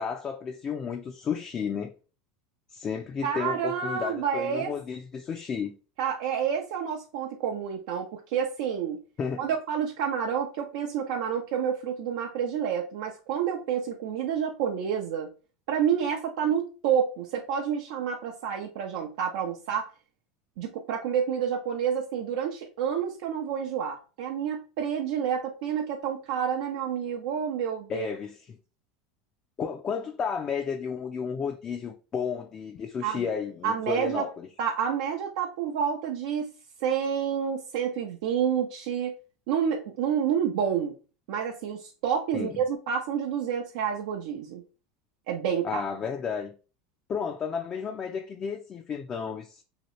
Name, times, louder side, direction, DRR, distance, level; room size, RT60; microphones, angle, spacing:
voice 1, 0.0-1.9 2.7-5.7 9.2-9.5 27.9-28.6 29.6-34.5 42.3-42.6 45.6-46.5 47.1-49.6, left 6 dB, 30° left, 0.4 m, -32 dB
voice 2, 3.2-4.7 6.0-9.0 9.4-15.3 15.7-19.9 20.6-28.1 33.0-33.2 33.6-34.2 34.6-36.5 36.8-39.1 39.5-40.9 41.3-44.6 45.3-45.8, right 8 dB, 75° right, 0.6 m, -29 dB
2.9 x 2.8 x 3.0 m
supercardioid pair, 125°, 3 cm